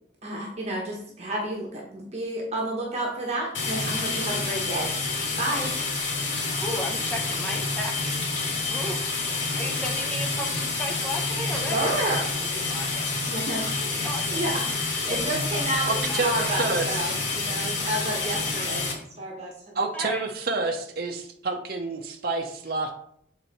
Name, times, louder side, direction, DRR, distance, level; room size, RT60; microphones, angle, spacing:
voice 1, 0.2-4.9 5.4-5.8 11.5-12.3 13.1-13.7 14.3-18.9 19.2-19.7, right 1 dB, 35° right, -2 dB, 1.2 m, -30 dB
sound 1, 3.5-18.9, left 3 dB, 90° left, 2.3 m, -28 dB
voice 2, 6.6-8.3 8.7-9.1 9.6-11.9 12.4-14.4 15.0-15.3 16.1-16.2 18.2-18.3 19.9-20.2, left 1 dB, 10° left, 0 dB, 1.0 m, -35 dB
voice 3, 15.9-16.3 16.6-17.0 19.7-22.9, right 3 dB, 55° right, 3 dB, 0.7 m, -28 dB
7.3 x 4.0 x 4.2 m, 0.68 s
head